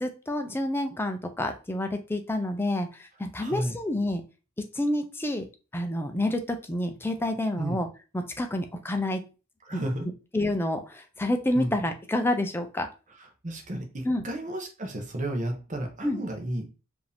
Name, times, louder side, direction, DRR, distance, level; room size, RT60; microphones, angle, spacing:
voice 1, 0.0-4.2 4.7-5.4 5.7-7.9 8.1-9.2 9.7-9.8 10.3-12.9 14.0-14.2 16.0-16.2, left 1 dB, 10° left, 6 dB, 0.5 m, -28 dB
voice 2, 3.4-3.8 7.6-7.8 9.6-10.1 11.5-11.7 13.2-16.7, right 1 dB, 35° right, 3 dB, 0.9 m, -33 dB
4.9 x 2.7 x 3.4 m, 0.33 s
head